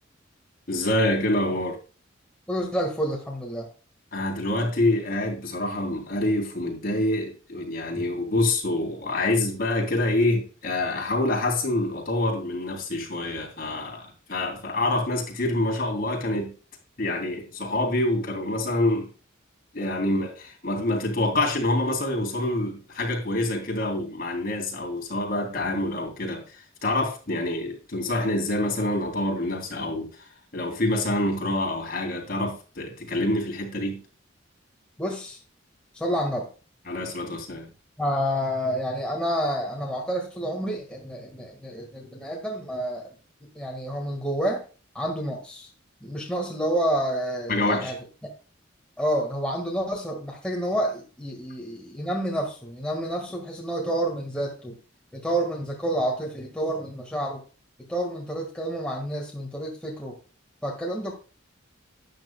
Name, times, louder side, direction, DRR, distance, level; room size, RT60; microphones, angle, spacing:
voice 1, 0.7-1.8 4.1-16.5 17.0-19.1 19.7-26.4 26.8-30.1 30.5-34.0 36.9-37.7 47.5-47.9, left 1 dB, 50° left, 3.1 m, -26 dB
voice 2, 2.5-3.7 7.9-8.1 35.0-35.4 35.9-36.5 38.0-43.1 43.5-44.6 44.9-45.7 46.0-48.0 48.2-48.3 49.0-54.7 55.1-57.4 57.8-60.2 60.6-61.1, right 1 dB, 5° left, 1.6 m, -29 dB
12.0 x 9.0 x 2.2 m
head